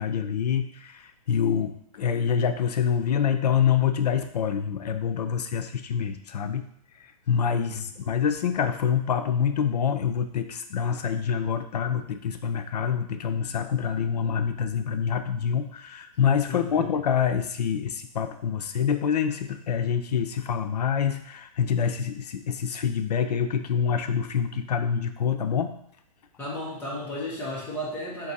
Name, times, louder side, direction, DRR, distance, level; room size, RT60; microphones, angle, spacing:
voice 1, 0.0-6.6 7.3-25.7, left 7 dB, 85° left, 8 dB, 0.5 m, -26 dB
voice 2, 16.5-16.8 26.4-28.3, equal, 10° left, -5 dB, 0.9 m, -34 dB
3.9 x 2.7 x 4.1 m, 0.73 s
hypercardioid pair, 165°, 20 cm